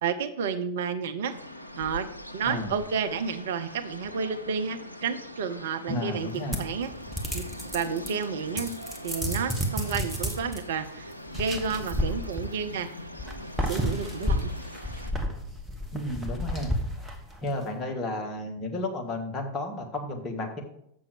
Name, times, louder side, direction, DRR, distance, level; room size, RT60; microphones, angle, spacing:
voice 1, 0.0-1.3 1.8-2.1 2.3-6.9 7.3-7.4 7.7-8.7 9.0-12.9 13.7-14.5, right 6 dB, 60° right, 9 dB, 0.6 m, -31 dB
sound 1, 1.3-15.1, left 1 dB, 90° left, 0.5 m, -42 dB
voice 2, 2.4-2.8 5.9-6.6 15.9-16.7 17.4-20.6, left 1 dB, 25° left, 2 dB, 1.5 m, -32 dB
sound 2, 6.5-8.2 8.6-10.6 11.3-12.7 13.2-17.5, equal, 5° right, 1.3 m, -31 dB
7.4 x 6.1 x 5.0 m, 0.72 s
figure-of-eight pair, 90°, 0 cm